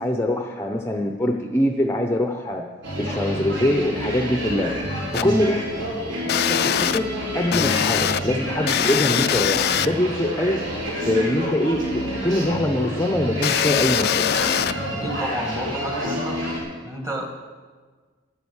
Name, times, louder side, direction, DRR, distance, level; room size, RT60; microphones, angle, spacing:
voice 1, 0.0-2.6 3.0-4.7 5.2-5.6 6.1-7.1 7.3-10.6 11.0-14.2, left 1 dB, 15° left, 3 dB, 0.7 m, -23 dB
sound 1, 2.8-16.6, equal, 70° right, 5.7 m, -28 dB
sound 2, 5.1-5.2 6.3-7.0 7.5-8.2 8.7-9.9 13.4-14.7, left 9 dB, 55° left, 0.4 m, -22 dB
voice 2, 14.9-16.4 16.8-17.3, equal, 15° right, 2 dB, 2.0 m, -29 dB
12.0 x 11.0 x 7.2 m, 1.5 s
head